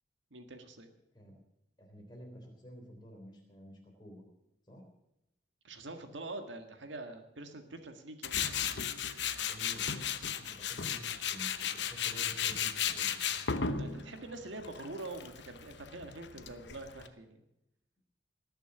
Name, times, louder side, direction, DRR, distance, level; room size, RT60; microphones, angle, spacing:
voice 1, 0.3-0.9 5.6-8.6 13.8-17.4, right 2 dB, 90° right, 6 dB, 1.8 m, -45 dB
voice 2, 1.8-4.2 4.7-4.9 9.4-13.2, equal, 25° left, 1 dB, 3.6 m, -51 dB
Tools, 8.2-17.1, left 8 dB, 70° left, 0.9 m, -35 dB
19.0 x 6.9 x 8.0 m, 0.87 s
head